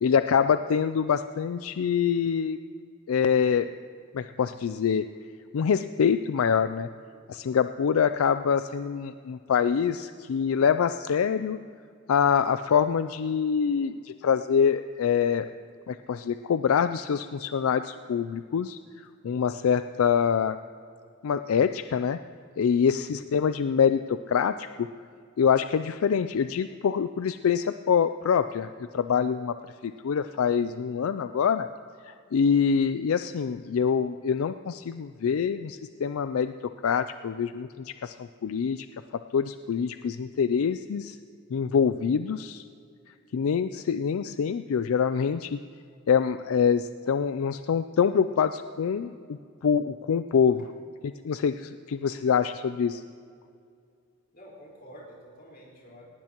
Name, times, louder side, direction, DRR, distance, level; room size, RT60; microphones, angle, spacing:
voice 1, 0.0-2.6 3.1-3.7 4.1-5.1 5.5-6.9 7.3-11.6 12.1-15.5 15.9-18.8 19.2-20.6 21.2-22.2 22.6-24.9 25.4-28.7 28.9-29.6 29.8-31.7 32.0-38.9 39.3-41.2 41.5-42.6 43.3-45.6 46.1-50.6 51.2-53.0, left 7 dB, 80° left, 11 dB, 0.4 m, -25 dB
voice 2, 22.7-23.2 54.3-56.0, equal, 45° left, -4 dB, 4.5 m, -50 dB
18.5 x 18.5 x 3.0 m, 2.3 s
head